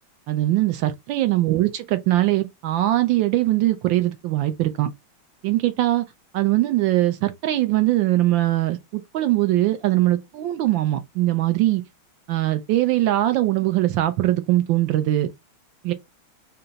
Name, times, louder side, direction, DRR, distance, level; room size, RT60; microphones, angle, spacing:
voice 1, 0.3-4.9 5.4-6.0 6.3-11.8 12.3-15.3 15.8-15.9, right 15 dB, 75° right, 1.1 m, -21 dB
3.8 x 2.3 x 3.9 m
omnidirectional pair, 2.4 m